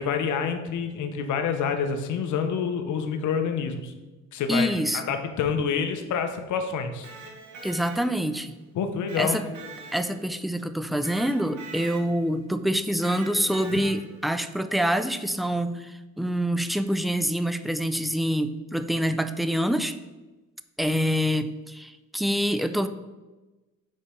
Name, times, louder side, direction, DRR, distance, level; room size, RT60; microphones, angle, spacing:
voice 1, 0.0-3.9 4.3-4.7 4.9-7.1 8.7-9.4 13.7-13.8, left 6 dB, 75° left, 7 dB, 0.8 m, -27 dB
voice 2, 4.5-5.1 7.6-8.6 9.2-9.5 9.9-20.0 20.8-22.9, equal, ahead, 10 dB, 0.3 m, -26 dB
Electric guitar, 6.9-8.4 9.1-10.5 11.0-12.3 13.0-14.3, right 3 dB, 75° right, 1.5 m, -43 dB
5.3 x 4.3 x 5.1 m, 1.1 s
cardioid pair, 90°, 30 cm